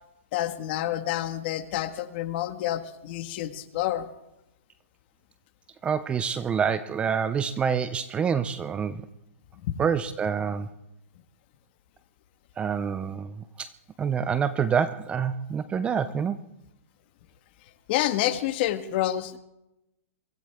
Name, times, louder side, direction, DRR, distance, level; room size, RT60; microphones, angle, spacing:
voice 1, 0.3-4.1 9.5-9.8 17.6-19.4, left 13 dB, 45° left, 10 dB, 1.5 m, -28 dB
voice 2, 5.8-9.1 9.8-10.7 12.6-13.7 14.0-16.5, right 7 dB, 15° right, 14 dB, 0.6 m, -27 dB
23.5 x 16.5 x 3.5 m, 0.89 s
hypercardioid pair, 150°, 8 cm